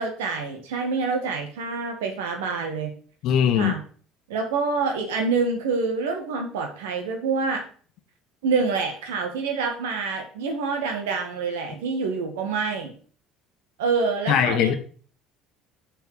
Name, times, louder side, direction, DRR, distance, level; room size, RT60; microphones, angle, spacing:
voice 1, 0.0-2.9 3.6-3.8 4.3-7.6 8.4-12.9 13.8-14.7, right 4 dB, 70° right, 4 dB, 2.1 m, -26 dB
voice 2, 3.2-3.7 14.3-14.7, left 9 dB, 55° left, 8 dB, 1.2 m, -20 dB
6.8 x 6.0 x 6.6 m, 0.44 s
figure-of-eight pair, 60°, 0 cm